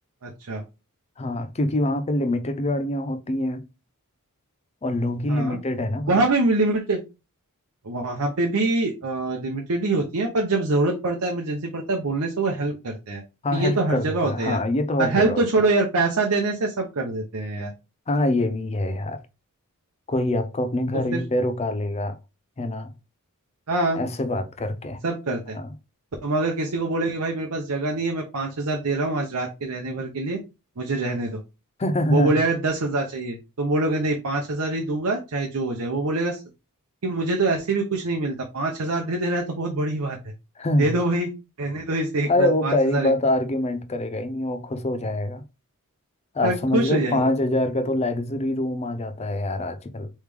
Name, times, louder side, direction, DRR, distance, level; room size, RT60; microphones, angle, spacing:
voice 1, 0.2-0.6 5.3-5.6 6.1-7.0 7.8-13.2 13.5-14.6 15.0-17.7 20.9-21.2 23.7-24.0 25.0-25.6 26.2-30.4 30.8-31.4 32.1-36.4 37.0-40.3 40.8-41.3 41.6-43.2 46.4-47.2, right 2 dB, 70° right, 0.7 m, -24 dB
voice 2, 1.2-3.7 4.8-6.2 13.4-15.6 18.1-19.2 20.1-22.2 22.6-22.9 24.0-25.0 25.5-25.7 31.8-32.4 40.6-41.0 42.3-45.4 46.3-50.1, left 1 dB, 30° left, 0.5 m, -25 dB
3.5 x 3.1 x 3.3 m
head